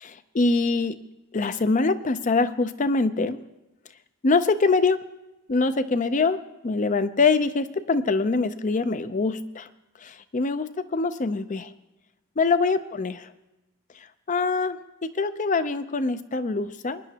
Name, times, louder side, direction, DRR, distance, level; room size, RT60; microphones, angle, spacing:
voice 1, 0.0-1.0 1.3-3.4 4.2-5.0 5.5-6.4 6.6-9.6 10.3-11.7 12.4-13.2 14.3-14.8 15.2-17.0, left 3 dB, 35° left, 12 dB, 0.5 m, -24 dB
23.5 x 10.0 x 2.9 m, 0.97 s
head